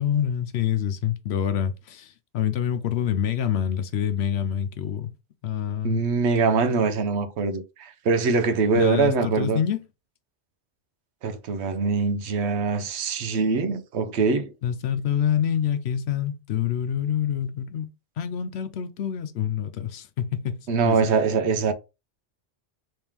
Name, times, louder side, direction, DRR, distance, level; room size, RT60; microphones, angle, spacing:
voice 1, 0.0-5.1 5.4-6.0 8.7-9.8 14.6-17.9 18.2-21.0, left 9 dB, 75° left, 0.8 m, -26 dB
voice 2, 5.8-9.6 11.2-14.5 20.7-21.7, right 4 dB, 80° right, 0.9 m, -23 dB
3.5 x 3.2 x 3.0 m
omnidirectional pair, 1.1 m